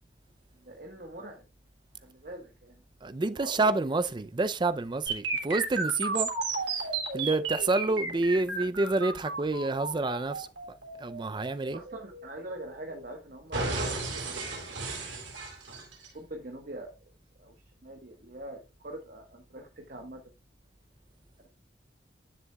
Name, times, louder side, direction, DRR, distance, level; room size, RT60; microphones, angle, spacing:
voice 1, 0.5-1.4 2.0-2.8 3.3-3.8 11.7-14.6 16.1-16.9 17.4-17.6 17.8-20.2, right 1 dB, 50° right, 1.3 m, -44 dB
voice 2, 3.0-6.3 6.8-6.9 7.1-10.5 11.0-11.8, right 3 dB, 25° right, 0.4 m, -28 dB
sound 1, 5.1-13.0 13.5-16.1, right 4 dB, 85° right, 3.2 m, -34 dB
11.0 x 6.9 x 2.3 m
head